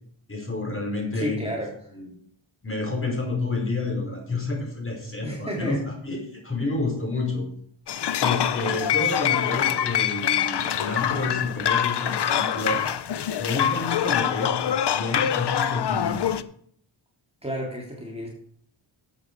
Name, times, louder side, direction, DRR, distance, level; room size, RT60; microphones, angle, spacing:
voice 1, 0.3-1.5 1.9-2.1 2.6-7.5 8.2-12.9 13.4-16.2, left 3 dB, 25° left, 0 dB, 4.9 m, -29 dB
voice 2, 1.1-1.7 5.2-5.8 17.4-18.3, equal, 10° right, -2 dB, 2.9 m, -31 dB
sound 1, 7.9-16.4, left 10 dB, 55° left, 0.7 m, -25 dB
12.5 x 7.9 x 4.7 m, 0.62 s
cardioid pair, 75°, 48 cm